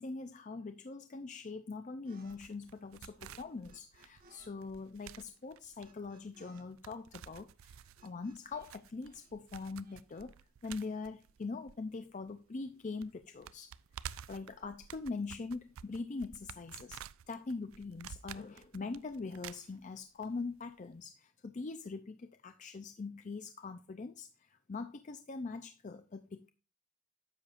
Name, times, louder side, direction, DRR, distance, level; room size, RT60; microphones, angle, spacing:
voice 1, 0.0-10.3 10.6-13.7 14.0-26.5, left 3 dB, 35° left, 0.4 m, -43 dB
sound 1, 2.1-2.4 2.6-4.5 4.8-8.8 9.0-10.2, right 2 dB, 40° right, 1.3 m, -65 dB
sound 2, 2.2-12.3 12.6-12.7 13.0-20.3 20.5-20.6, right 9 dB, 65° right, 0.3 m, -51 dB
10.0 x 7.1 x 2.5 m
head